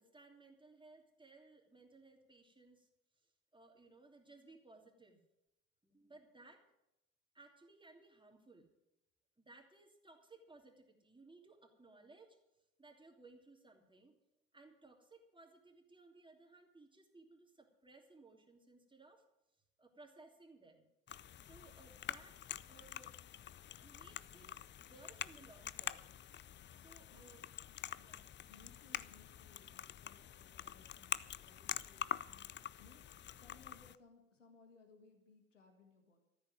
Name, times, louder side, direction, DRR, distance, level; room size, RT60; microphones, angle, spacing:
voice 1, 0.0-2.9 3.2-5.2 5.8-6.7 7.3-8.7 9.4-12.4 12.8-14.2 14.5-19.2 19.8-20.9 21.4-22.4 22.7-23.1 23.8-26.1 26.7-27.4 27.9-28.3, right 3 dB, 15° right, 3 dB, 3.0 m, -61 dB
sound 1, 21.1-34.0, left 10 dB, 30° left, 0.5 m, -46 dB
voice 2, 27.7-28.1 28.5-36.2, left 4 dB, 85° left, 5 dB, 1.8 m, -65 dB
13.5 x 7.9 x 9.2 m, 0.87 s
figure-of-eight pair, 50°, 36 cm